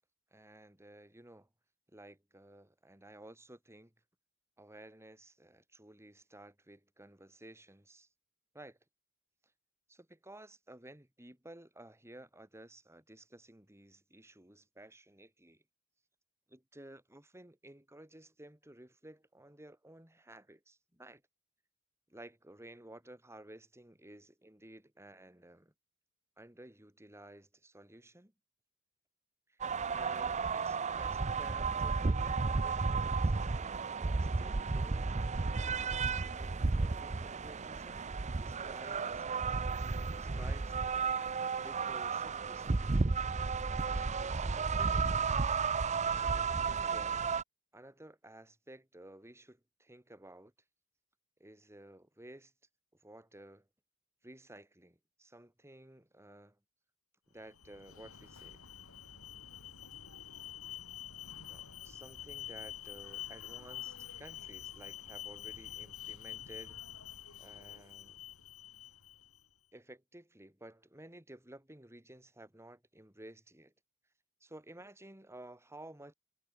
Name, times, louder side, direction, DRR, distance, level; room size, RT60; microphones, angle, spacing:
voice 1, 0.3-1.5 1.9-3.9 4.6-8.1 8.5-8.8 9.9-15.6 16.5-21.2 22.1-25.7 26.4-28.3 29.5-29.6 29.9-33.3 33.9-35.2 36.4-38.1 38.4-39.3 40.0-40.7 41.6-43.0 43.7-45.4 46.1-47.3 47.7-50.5 51.4-52.5 53.0-53.7 54.2-56.6 57.3-58.6 61.5-66.8 67.4-68.2 69.7-73.7 74.4-76.1, right 1 dB, 15° right, 3.9 m, -54 dB
sound 1, 29.6-47.4, right 4 dB, 35° right, 0.6 m, -33 dB
Alarm, 57.4-69.4, left 11 dB, 85° left, 6.0 m, -47 dB
head